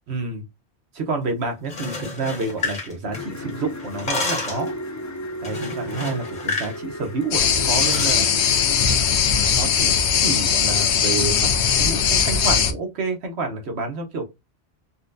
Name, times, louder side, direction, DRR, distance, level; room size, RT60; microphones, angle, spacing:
voice 1, 0.1-0.4 0.9-4.7 5.4-8.7 9.2-14.2, right 3 dB, 75° right, 1.1 m, -29 dB
sound 1, 1.6-3.5 3.8-4.7 5.4-6.8 7.0-7.2 7.7-8.2, left 3 dB, 45° left, 1.2 m, -30 dB
sound 2, 3.1-9.9, equal, 25° left, 0.4 m, -35 dB
sound 3, 7.3-12.7, left 7 dB, 85° left, 0.9 m, -19 dB
4.1 x 2.2 x 2.5 m
omnidirectional pair, 1.1 m